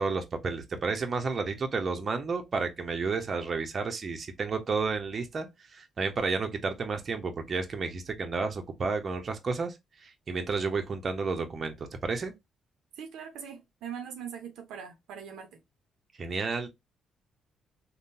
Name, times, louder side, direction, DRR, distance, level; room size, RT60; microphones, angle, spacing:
voice 1, 0.0-9.8 10.0-12.3 16.2-16.7, right 4 dB, 40° right, 0.7 m, -31 dB
voice 2, 13.0-15.6, right 7 dB, 85° right, 0.6 m, -41 dB
3.6 x 2.2 x 2.6 m
cardioid pair, 90°, 0 cm